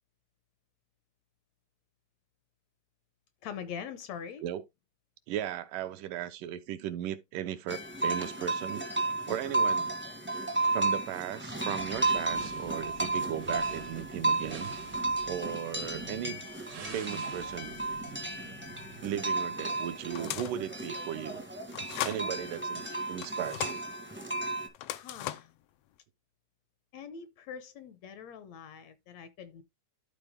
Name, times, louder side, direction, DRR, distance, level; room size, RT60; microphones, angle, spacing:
voice 1, 3.4-4.4 24.9-25.5 26.9-29.6, left 7 dB, 70° left, 1.8 m, -43 dB
voice 2, 5.3-8.8 9.3-9.9 10.7-14.7 15.2-16.5 16.9-17.7 19.0-21.4 22.0-23.8, right 11 dB, 85° right, 2.4 m, -37 dB
sound 1, 7.7-24.7, right 2 dB, 10° right, 0.5 m, -33 dB
sound 2, 11.8-19.3, right 5 dB, 65° right, 1.1 m, -47 dB
sound 3, 20.1-20.6 21.7-22.2 23.2-23.8 24.7-25.6, left 13 dB, 85° left, 1.3 m, -37 dB
12.0 x 4.2 x 3.6 m
omnidirectional pair, 3.6 m